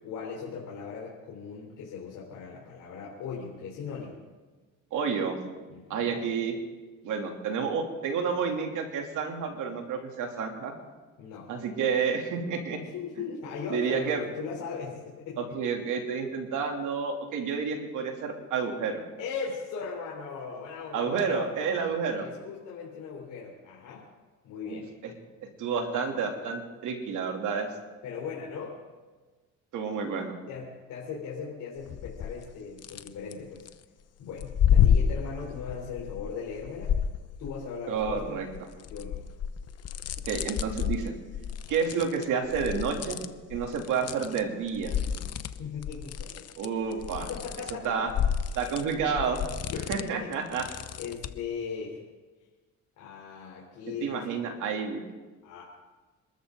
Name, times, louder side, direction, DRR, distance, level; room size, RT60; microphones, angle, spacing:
voice 1, 0.0-4.2 5.7-6.2 11.2-11.5 12.8-15.4 19.2-24.1 24.4-24.9 28.0-28.8 30.5-33.7 34.2-36.9 37.4-38.4 38.8-39.2 45.5-46.5 47.2-48.1 49.7-50.4 51.0-52.0 53.0-54.3 55.4-55.6, left 6 dB, 90° left, -4 dB, 3.7 m, -39 dB
voice 2, 4.9-5.4 5.9-6.6 7.0-10.7 11.5-12.8 13.7-14.2 15.4-19.0 20.9-22.3 24.6-25.1 25.6-27.7 29.7-30.3 37.9-38.5 40.3-41.1 41.7-43.2 43.5-44.9 46.6-47.3 47.8-48.1 48.5-49.4 49.9-50.7 54.0-55.0, right 6 dB, 85° right, 2 dB, 3.1 m, -30 dB
sound 1, 31.8-32.4 32.8-33.7 34.4-37.7 38.0-44.4 44.7-51.4, left 8 dB, 55° left, 0.8 m, -30 dB
26.5 x 13.5 x 3.9 m, 1.3 s
cardioid pair, 90°, 30 cm